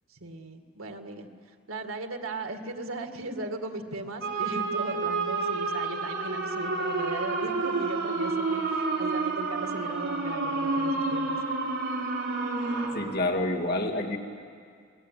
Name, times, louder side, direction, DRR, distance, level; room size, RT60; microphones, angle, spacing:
voice 1, 0.1-11.4, right 2 dB, 90° right, 5 dB, 2.2 m, -37 dB
sound 1, 4.2-12.9, right 3 dB, 65° right, 4.8 m, -29 dB
voice 2, 12.9-14.2, left 2 dB, 50° left, 1 dB, 2.6 m, -28 dB
27.5 x 20.5 x 9.4 m, 2.2 s
head